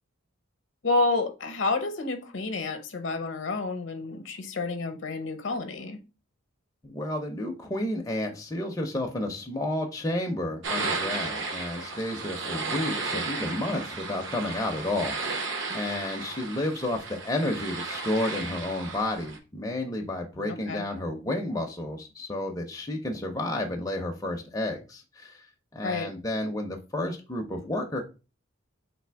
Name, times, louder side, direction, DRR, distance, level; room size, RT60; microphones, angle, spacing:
voice 1, 0.8-6.0 20.4-20.9 25.8-26.1, left 3 dB, 65° left, 0.7 m, -29 dB
voice 2, 6.8-15.4 15.7-25.5 25.7-28.0, left 1 dB, 15° left, 0.4 m, -31 dB
sound 1, 10.6-19.4, right 3 dB, 65° right, 0.7 m, -34 dB
3.3 x 2.7 x 4.4 m
head